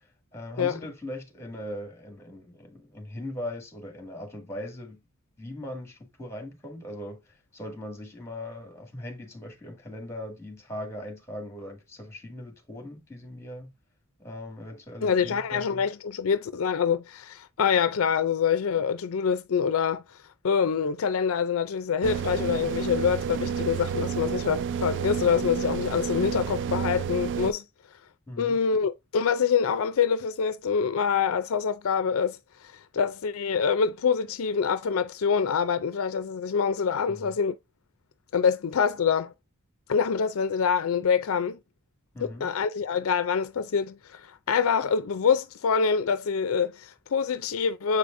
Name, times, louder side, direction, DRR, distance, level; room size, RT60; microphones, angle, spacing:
voice 1, 0.3-5.0 5.4-13.7 14.2-15.8 28.3-28.6 37.1-37.3 42.1-42.5, left 1 dB, 15° left, 2.0 m, -39 dB
voice 2, 15.0-20.0 20.4-27.6 28.4-32.4 32.9-37.5 38.3-39.3 39.9-41.6 42.2-48.0, left 6 dB, 65° left, 0.4 m, -25 dB
sound 1, 22.0-27.5, right 7 dB, 55° right, 0.3 m, -30 dB
7.4 x 4.9 x 2.6 m
head